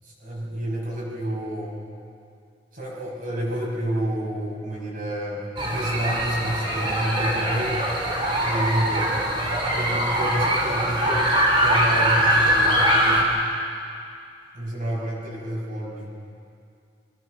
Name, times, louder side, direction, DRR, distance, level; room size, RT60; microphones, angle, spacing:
voice 1, 0.2-1.8 2.7-7.9 8.4-9.2 9.6-13.3 14.5-16.1, right 1 dB, 50° right, -5 dB, 5.6 m, -29 dB
sound 1, 5.6-13.2, right 1 dB, 30° right, 3.0 m, -22 dB
22.5 x 18.5 x 6.5 m, 2.4 s
head